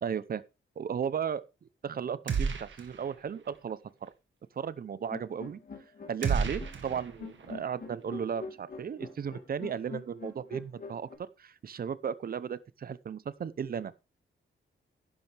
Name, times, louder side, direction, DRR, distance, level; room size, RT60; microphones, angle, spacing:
voice 1, 0.0-0.4 0.8-1.4 1.8-4.1 4.6-5.6 6.1-13.9, right 7 dB, 45° right, 0.7 m, -35 dB
sound 1, 2.3-3.2 3.4-3.6 6.2-7.5, right 5 dB, 65° right, 1.8 m, -32 dB
sound 2, 5.1-11.2, left 4 dB, 45° left, 2.6 m, -44 dB
11.0 x 10.5 x 3.4 m
wide cardioid pair, 155°, 21 cm